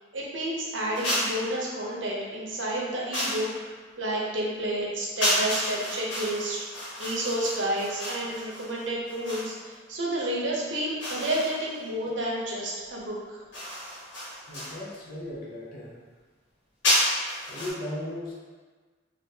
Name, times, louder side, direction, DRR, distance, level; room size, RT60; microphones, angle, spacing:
voice 1, 0.1-3.7 4.0-13.4, right 1 dB, 70° right, -4 dB, 0.7 m, -30 dB
sound 1, 1.0-1.5 3.1-3.5 5.2-9.6 11.0-11.8 13.5-14.8 16.8-17.7, left 1 dB, 80° left, 1.2 m, -30 dB
voice 2, 14.5-16.0 17.5-18.3, left 1 dB, 50° left, -5 dB, 0.6 m, -37 dB
3.4 x 2.5 x 2.7 m, 1.4 s
head